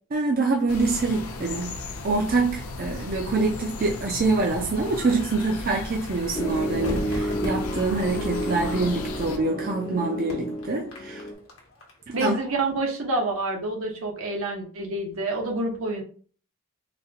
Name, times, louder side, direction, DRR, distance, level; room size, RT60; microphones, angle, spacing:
voice 1, 0.1-11.2 12.1-12.3, right 3 dB, 45° right, 0.5 m, -25 dB
sound 1, 0.7-9.4, left 2 dB, 90° left, 0.5 m, -36 dB
Piano, 6.3-11.3, right 1 dB, 25° left, 0.4 m, -31 dB
Crowd / Fireworks, 6.8-12.2 12.5-12.6, equal, 70° left, 1.1 m, -38 dB
voice 2, 12.1-16.0, right 2 dB, 75° right, 0.9 m, -28 dB
4.0 x 2.2 x 2.7 m
head